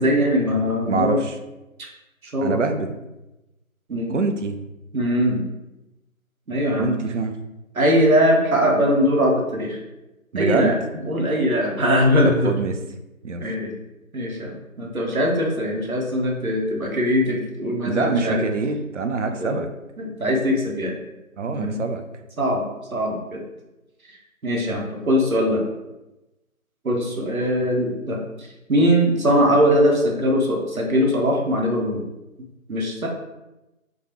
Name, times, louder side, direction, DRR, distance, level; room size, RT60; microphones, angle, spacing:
voice 1, 0.0-1.2 2.3-2.6 3.9-4.2 4.9-5.4 6.5-6.9 7.7-9.8 10.4-10.7 11.1-12.6 13.4-13.7 14.1-18.4 19.4-19.6 20.0-21.0 21.5-21.8 22.4-22.6 22.9-23.4 24.4-25.6 26.8-32.0 32.7-33.1, equal, 80° right, -1 dB, 1.1 m, -21 dB
voice 2, 0.9-1.4 2.4-2.9 4.1-4.6 6.8-7.3 10.3-10.7 12.2-12.8 13.2-13.4 17.9-19.7 21.4-22.0, right 4 dB, 60° right, 6 dB, 0.5 m, -24 dB
3.8 x 2.3 x 3.0 m, 0.99 s
figure-of-eight pair, 160°, 41 cm